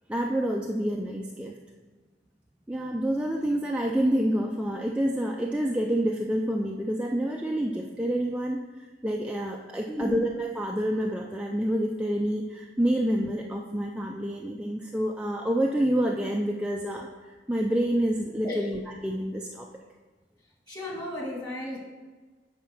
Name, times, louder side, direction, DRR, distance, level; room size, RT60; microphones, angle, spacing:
voice 1, 0.1-1.5 2.7-8.7 9.0-19.7, right 1 dB, 5° right, 0 dB, 0.4 m, -28 dB
voice 2, 9.9-10.2 18.4-18.7 20.7-21.8, left 1 dB, 25° left, -2 dB, 2.1 m, -33 dB
9.1 x 4.3 x 5.9 m, 1.3 s
head